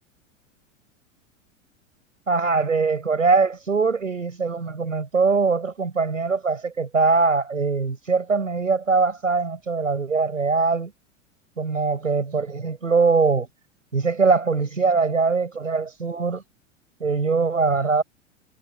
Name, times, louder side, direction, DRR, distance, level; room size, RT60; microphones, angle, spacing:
voice 1, 2.3-10.9 11.6-13.5 13.9-16.4 17.0-18.0, right 4 dB, 80° right, 7.3 m, -22 dB
figure-of-eight pair, 90°, 38 cm